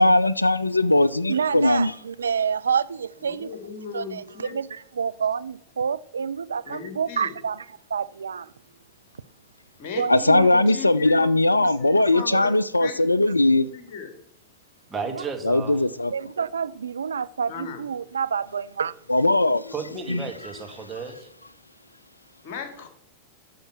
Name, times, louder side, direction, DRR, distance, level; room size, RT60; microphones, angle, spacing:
voice 1, 0.0-1.9 10.1-13.7 15.4-16.1 19.1-19.7 20.1-20.2, left 2 dB, 85° left, 0.3 m, -19 dB
voice 2, 1.3-3.5 3.9-7.7 7.9-8.5 10.0-10.5 12.2-12.4 15.1-15.2 16.1-18.9, right 6 dB, 70° right, 0.4 m, -28 dB
voice 3, 3.2-4.5 6.7-7.4 9.8-14.1 17.5-17.8 22.4-22.9, left 7 dB, 45° left, 2.3 m, -37 dB
voice 4, 14.9-15.8 19.7-21.3, right 5 dB, 15° right, 1.9 m, -33 dB
10.5 x 6.6 x 6.1 m
figure-of-eight pair, 90°, 0 cm